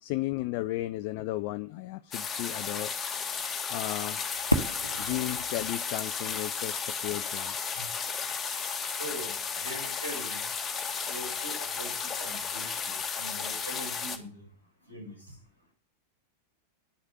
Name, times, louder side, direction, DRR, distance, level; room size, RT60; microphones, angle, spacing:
voice 1, 0.0-2.9 3.7-4.2 5.0-7.6, left 17 dB, 45° left, 0.4 m, -34 dB
sound 1, 2.1-14.2, left 6 dB, 20° left, 1.4 m, -34 dB
Fireworks, 4.5-7.4, equal, 85° left, 1.0 m, -33 dB
voice 2, 9.0-9.3 9.6-10.4 11.1-14.4 14.9-15.2, equal, 85° right, 6.5 m, -42 dB
10.5 x 6.5 x 6.7 m
figure-of-eight pair, 90°, 0 cm